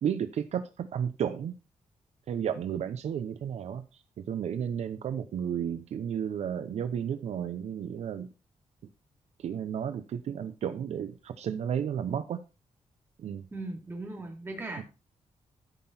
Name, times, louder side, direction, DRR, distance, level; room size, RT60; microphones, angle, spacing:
voice 1, 0.0-1.5 2.3-8.3 9.4-12.4 13.2-13.5 14.8-14.9, right 8 dB, 70° right, 10 dB, 0.7 m, -33 dB
voice 2, 13.5-14.8, right 2 dB, 20° right, 1 dB, 2.8 m, -38 dB
13.0 x 5.8 x 4.2 m, 0.30 s
wide cardioid pair, 175°, 12 cm